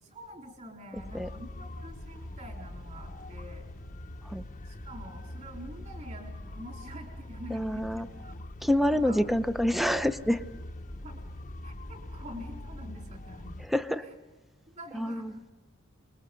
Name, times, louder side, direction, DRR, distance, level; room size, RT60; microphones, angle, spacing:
voice 1, 0.0-3.7 4.7-8.4 8.9-9.2 11.0-11.2 11.6-13.6 14.0-14.1 14.8-15.5, equal, 35° right, 2 dB, 3.9 m, -46 dB
sound 1, 0.9-13.7, left 1 dB, 40° left, 0.9 m, -43 dB
voice 2, 7.5-8.1 8.6-10.4 13.7-14.1 14.9-15.3, left 1 dB, ahead, 11 dB, 0.7 m, -27 dB
30.0 x 21.5 x 5.3 m, 1.1 s
head